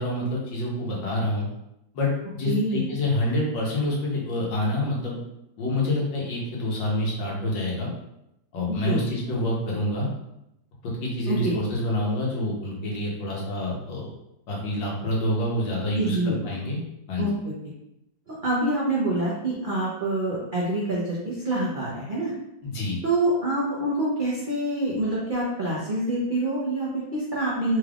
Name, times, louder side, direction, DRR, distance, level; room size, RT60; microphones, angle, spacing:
voice 1, 0.0-1.5 1.9-5.2 5.6-7.9 8.5-10.1 10.8-14.1 14.5-16.8 17.1-17.3 22.6-23.0, left 1 dB, 75° left, -3 dB, 1.7 m, -27 dB
voice 2, 2.4-2.8 8.8-9.1 11.3-11.5 15.9-16.4 17.2-17.5 18.3-22.3 23.0-27.8, right 1 dB, 85° right, -7 dB, 0.4 m, -26 dB
4.1 x 3.4 x 2.4 m, 0.84 s
omnidirectional pair, 2.1 m